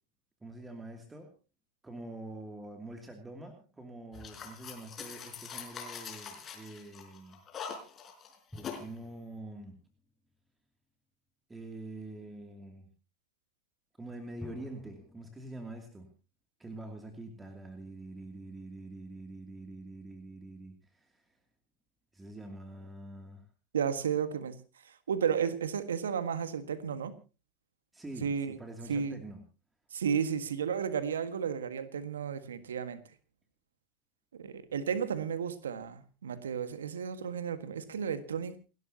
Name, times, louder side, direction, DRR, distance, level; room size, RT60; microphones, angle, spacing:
voice 1, 0.4-1.3 1.8-7.4 8.6-9.8 11.5-12.9 14.0-16.1 16.6-21.4 22.1-23.5 27.9-29.4, right 2 dB, 15° right, 4 dB, 2.7 m, -45 dB
sound 1, 4.1-8.9, left 6 dB, 30° left, 4.8 m, -43 dB
sound 2, 5.6-5.7 8.5-11.1 14.4-15.4, left 1 dB, 5° left, 4.8 m, -53 dB
voice 2, 23.7-24.5 24.8-27.1 28.2-28.6 28.9-29.2 29.9-33.0 34.3-38.6, right 7 dB, 75° right, 12 dB, 1.6 m, -33 dB
29.0 x 12.5 x 2.9 m, 0.33 s
figure-of-eight pair, 85°, 0 cm